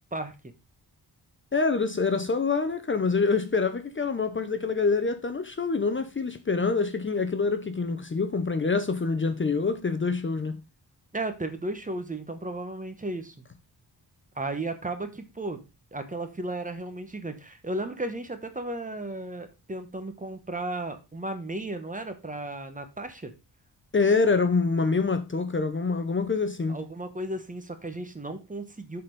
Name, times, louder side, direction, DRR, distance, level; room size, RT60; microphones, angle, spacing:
voice 1, 0.1-0.5 11.1-13.5 14.3-15.6 15.9-23.3 26.7-29.0, right 2 dB, 20° right, 1.1 m, -34 dB
voice 2, 1.5-10.5 23.9-26.8, left 4 dB, 30° left, 0.7 m, -26 dB
7.5 x 4.3 x 5.2 m
wide cardioid pair, 135°, 40 cm